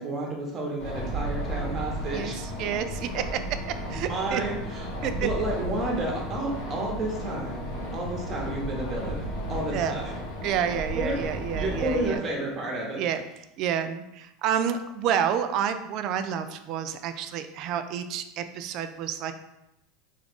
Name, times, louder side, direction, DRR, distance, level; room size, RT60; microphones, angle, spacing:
voice 1, 0.0-2.4 3.8-4.9 5.1-7.7 7.9-10.1 10.9-11.2 11.5-13.0, right 2 dB, 40° right, -1 dB, 1.0 m, -31 dB
sound 1, 0.8-12.2, equal, 75° left, 1.3 m, -34 dB
voice 2, 2.6-4.4 5.0-5.3 9.7-10.0 10.4-12.2 13.0-13.2 13.6-19.3, right 8 dB, 55° right, 9 dB, 0.3 m, -29 dB
3.5 x 2.4 x 3.6 m, 0.89 s
hypercardioid pair, 100°, 0 cm